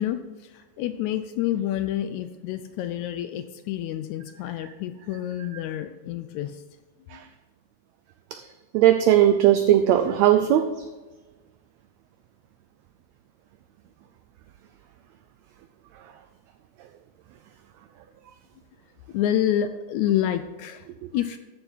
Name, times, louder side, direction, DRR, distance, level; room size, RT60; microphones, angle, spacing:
voice 1, 0.0-6.6 7.1-7.2 19.1-20.8 21.1-21.4, left 11 dB, 80° left, 10 dB, 1.7 m, -28 dB
voice 2, 8.7-10.7 21.0-21.1, right 11 dB, 90° right, 9 dB, 1.5 m, -18 dB
13.5 x 6.7 x 4.0 m, 1.2 s
omnidirectional pair, 3.7 m